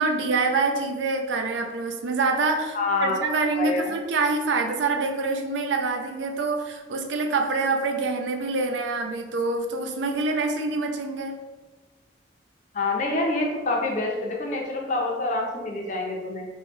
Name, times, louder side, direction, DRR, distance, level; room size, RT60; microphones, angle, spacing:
voice 1, 0.0-11.4, right 3 dB, 80° right, 4 dB, 0.4 m, -26 dB
voice 2, 2.7-3.1 3.5-4.0 12.7-16.5, left 2 dB, 40° left, 1 dB, 0.5 m, -26 dB
3.0 x 2.2 x 3.3 m, 1.2 s
head